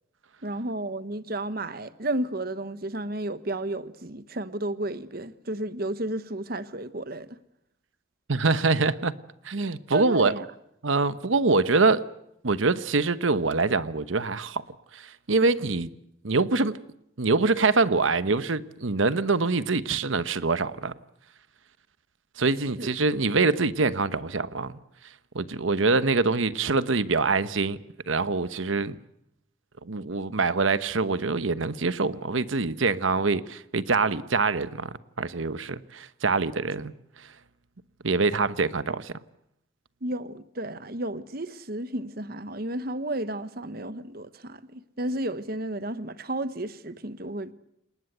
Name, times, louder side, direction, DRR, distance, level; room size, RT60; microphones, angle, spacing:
voice 1, 0.4-7.4 9.9-10.4 22.8-22.9 40.0-47.5, right 1 dB, 50° right, 1.1 m, -32 dB
voice 2, 8.3-9.1 9.4-10.3 10.8-12.0 12.4-14.6 14.9-15.9 16.2-16.7 17.2-20.9 22.4-24.8 25.3-27.8 28.1-29.0 29.8-36.9 38.0-39.1, right 3 dB, 80° right, 1.0 m, -24 dB
30.0 x 19.5 x 8.0 m
head